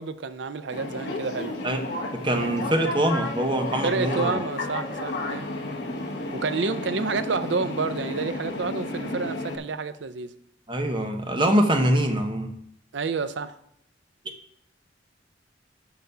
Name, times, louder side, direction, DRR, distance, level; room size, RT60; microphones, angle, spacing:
voice 1, 0.0-1.6 3.8-5.5 6.3-10.3 12.9-13.6, right 4 dB, 70° right, 0.5 m, -29 dB
sound 1, 0.7-9.6, left 2 dB, 65° left, 1.3 m, -32 dB
voice 2, 2.1-4.3 10.7-12.5, right 1 dB, 25° right, 0.9 m, -24 dB
6.8 x 5.1 x 6.7 m
head